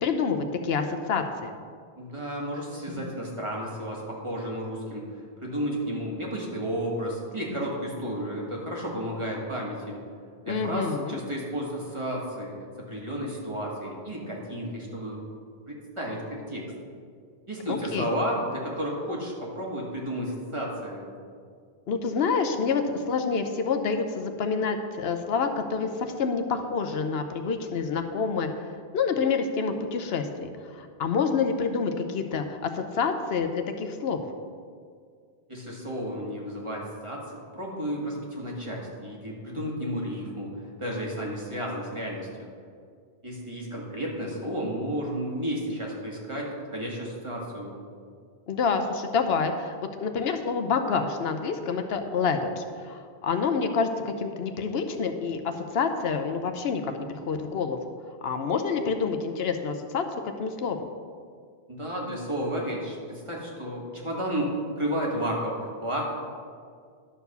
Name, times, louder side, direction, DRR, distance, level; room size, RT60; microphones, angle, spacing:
voice 1, 0.0-1.5 10.5-11.2 17.7-18.0 21.9-28.5 28.9-34.2 48.5-57.8 58.2-60.1 60.4-60.8, left 5 dB, 75° left, 6 dB, 0.9 m, -27 dB
voice 2, 2.0-5.1 5.4-10.0 10.4-15.2 15.7-16.7 17.5-21.1 35.5-42.5 43.2-47.7 61.7-66.2, equal, 30° right, -3 dB, 1.8 m, -32 dB
11.5 x 4.6 x 6.8 m, 2.1 s
omnidirectional pair, 1.1 m